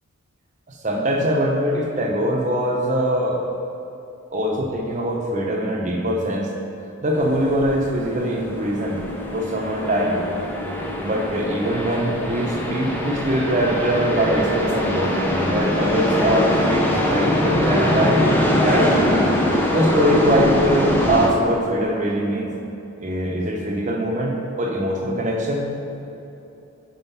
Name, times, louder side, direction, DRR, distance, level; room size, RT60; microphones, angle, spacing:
voice 1, 0.8-3.4 4.3-6.5 7.0-9.0 9.3-10.2 11.0-18.2 18.6-19.3 19.7-22.5 23.0-25.7, equal, 35° right, 0 dB, 0.8 m, -22 dB
sound 1, 7.1-21.3, left 1 dB, 10° left, 0.5 m, -22 dB
5.4 x 5.3 x 5.5 m, 2.9 s
head